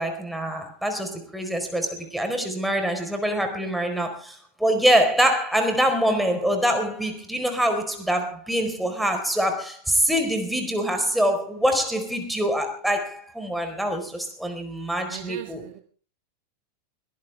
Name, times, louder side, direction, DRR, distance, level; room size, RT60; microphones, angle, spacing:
voice 1, 0.0-15.6, equal, ahead, 5 dB, 4.5 m, -24 dB
voice 2, 15.1-15.8, right 16 dB, 50° right, 6 dB, 2.0 m, -40 dB
22.5 x 18.0 x 3.5 m, 0.40 s
figure-of-eight pair, 90°, 0 cm